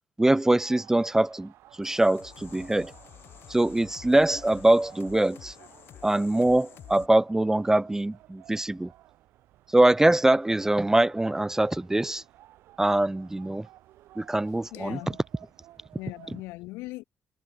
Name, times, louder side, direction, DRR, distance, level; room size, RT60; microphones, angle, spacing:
voice 1, 0.2-1.5 1.8-2.9 3.5-5.5 6.0-8.9 9.7-12.2 12.8-13.7 14.2-15.0, right 1 dB, 10° right, 0.4 m, -23 dB
sound 1, 0.6-16.5, right 15 dB, 75° right, 4.2 m, -55 dB
sound 2, 1.8-7.1, left 11 dB, 65° left, 2.2 m, -49 dB
voice 2, 14.7-15.2 16.0-17.0, left 21 dB, 85° left, 1.1 m, -39 dB
supercardioid pair, 60°, 4 cm